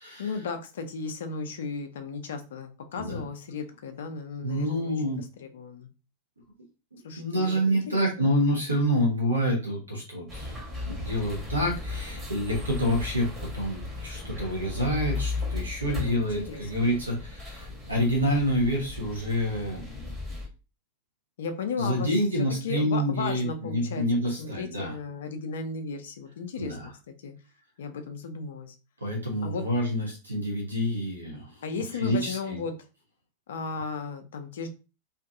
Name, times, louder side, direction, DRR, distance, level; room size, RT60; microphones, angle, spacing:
voice 1, 0.2-5.9 7.0-8.3 15.9-16.9 21.4-22.1 22.6-24.0 24.4-26.8 27.1-27.3 27.8-28.7 29.4-29.6 31.6-32.7 33.5-34.7, left 5 dB, 60° left, 7 dB, 0.4 m, -35 dB
voice 2, 4.4-5.2 6.9-10.6 10.9-20.1 21.8-24.9 26.6-26.9 29.0-31.6 32.0-32.6, equal, 80° right, 0 dB, 0.8 m, -28 dB
sound 1, 10.3-20.5, left 3 dB, 15° right, 1.1 m, -36 dB
2.6 x 2.4 x 2.4 m, 0.31 s
figure-of-eight pair, 90°, 0 cm